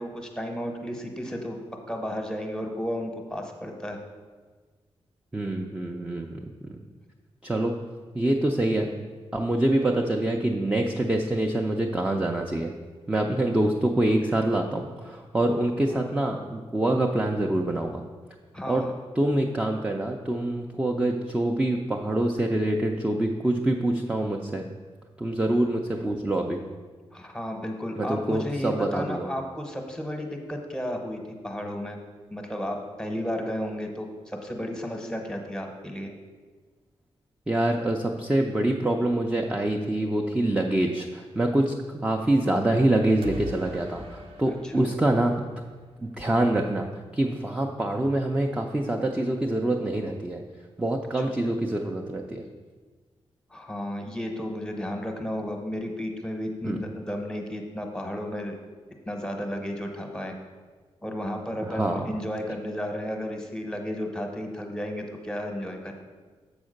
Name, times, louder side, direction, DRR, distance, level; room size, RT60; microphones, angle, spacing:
voice 1, 0.0-1.6 1.9-4.0 15.9-16.0 18.5-18.9 27.1-32.0 32.3-36.1 44.5-44.9 51.2-51.3 53.5-58.6 59.1-60.3 61.0-65.9, equal, 5° left, 3 dB, 0.8 m, -33 dB
voice 2, 5.3-6.4 6.7-6.8 7.4-7.8 8.1-8.9 9.3-12.7 13.1-18.0 18.7-18.9 19.2-24.7 25.2-26.6 28.0-29.3 37.5-45.4 46.0-46.9 47.1-50.4 50.8-52.4 56.6-56.8 61.6-62.1, right 1 dB, 10° right, 2 dB, 0.4 m, -25 dB
sound 1, 43.2-46.1, left 1 dB, 60° right, 0.7 m, -42 dB
7.1 x 4.7 x 6.4 m, 1.4 s
wide cardioid pair, 170°, 11 cm